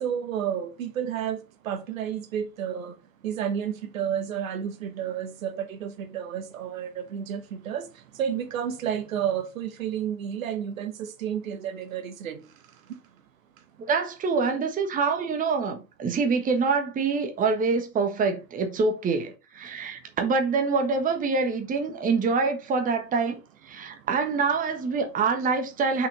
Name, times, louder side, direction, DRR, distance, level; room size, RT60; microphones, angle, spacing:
voice 1, 0.0-1.4 1.6-2.9 3.2-7.8 8.2-10.9 11.2-12.4, right 9 dB, 55° right, 1.3 m, -31 dB
voice 2, 13.9-23.4 23.6-26.1, right 4 dB, 15° right, 1.3 m, -25 dB
6.2 x 5.9 x 4.0 m
figure-of-eight pair, 95°, 49 cm